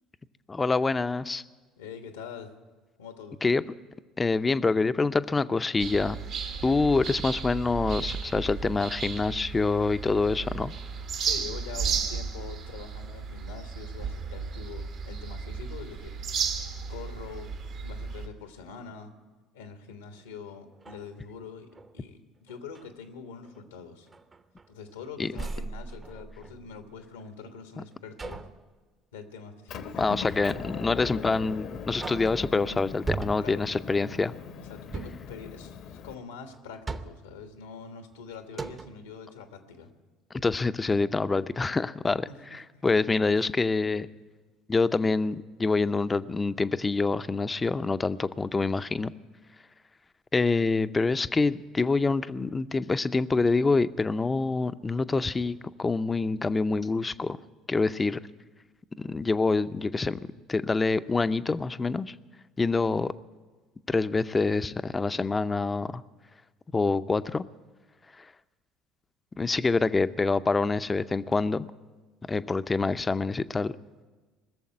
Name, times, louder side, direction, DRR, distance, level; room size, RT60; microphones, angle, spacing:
voice 1, 0.5-1.4 3.4-3.6 4.2-6.2 6.6-10.7 25.2-25.3 30.0-34.3 40.4-44.1 44.7-49.1 50.3-57.4 57.7-58.2 59.0-60.2 60.5-62.1 62.6-63.1 63.9-66.0 66.7-67.4 68.2-68.3 69.4-71.7 72.3-73.7, left 3 dB, 25° left, 13 dB, 0.5 m, -26 dB
voice 2, 1.8-2.6 3.0-3.4 6.6-6.9 11.2-16.6 16.9-17.5 17.8-19.1 19.5-24.1 24.7-28.4 29.1-30.2 33.4-33.7 34.6-39.9 42.3-42.6 43.3-43.4 69.7-69.9, left 5 dB, 85° left, 7 dB, 1.3 m, -44 dB
sound 1, 5.8-18.3, right 6 dB, 60° right, 1.4 m, -34 dB
sound 2, 20.1-20.3 20.7-22.0 22.5-22.9 23.4-23.7 24.1-25.0 25.3-26.9 28.2-28.7 30.3-30.7 31.2-31.3 31.8-32.6 33.1-33.7 34.8-35.3 36.5-37.4 38.1-38.2 38.5-39.1, right 3 dB, 30° right, 0.8 m, -39 dB
Motor vehicle (road) / Engine, 29.7-36.1, left 7 dB, 60° left, 0.9 m, -40 dB
20.0 x 7.1 x 9.5 m, 1.3 s
hypercardioid pair, 60°, 0 cm